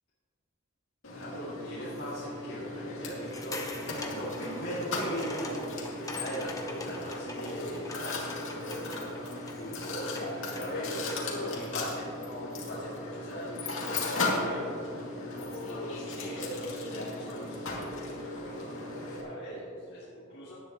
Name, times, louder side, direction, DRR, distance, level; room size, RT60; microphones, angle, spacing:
Mechanisms, 1.0-19.2, left 2 dB, 80° left, 2.5 m, -37 dB
voice 1, 1.1-12.1 12.4-14.9 15.1-18.0 18.3-20.6, equal, 50° left, -11 dB, 2.9 m, -40 dB
sound 1, 3.2-11.4, left 2 dB, 15° left, 1.0 m, -45 dB
18.0 x 10.5 x 3.1 m, 2.5 s
head